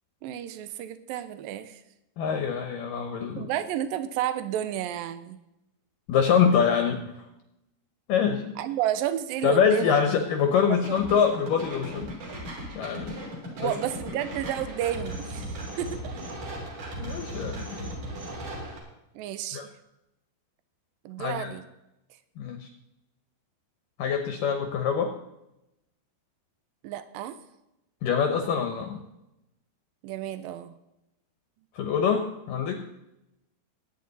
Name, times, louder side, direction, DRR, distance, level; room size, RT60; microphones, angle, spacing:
voice 1, 0.2-1.8 3.4-5.4 8.6-10.0 10.5-11.0 13.6-15.5 15.8-16.2 17.8-17.9 19.2-19.7 21.1-21.6 26.8-27.4 30.0-30.7, right 11 dB, 85° right, 12 dB, 2.0 m, -31 dB
voice 2, 2.2-3.5 6.1-7.0 8.1-8.5 9.4-12.1 12.8-13.2 13.6-13.7 17.0-17.9 19.5-19.7 21.2-21.5 22.4-22.7 24.0-25.2 28.0-29.0 31.8-32.8, left 7 dB, 70° left, 5 dB, 2.1 m, -25 dB
sound 1, 10.8-18.8, right 1 dB, 50° right, 4.4 m, -37 dB
21.0 x 9.4 x 4.1 m, 0.89 s
omnidirectional pair, 5.0 m